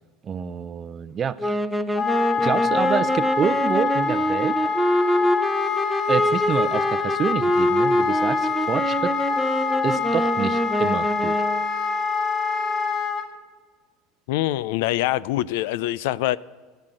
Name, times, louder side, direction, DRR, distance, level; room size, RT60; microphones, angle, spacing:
voice 1, 0.2-1.6 2.4-4.6 6.1-9.1 9.8-11.4, right 7 dB, 30° right, 0.6 m, -27 dB
sound 1, 1.4-11.7, equal, ahead, 0.8 m, -25 dB
Wind instrument woodwind instrument, 1.9-13.3, left 5 dB, 50° left, 2.2 m, -25 dB
voice 2, 14.3-16.4, left 15 dB, 75° left, 0.4 m, -24 dB
14.5 x 9.3 x 7.6 m
supercardioid pair, 115°, 0 cm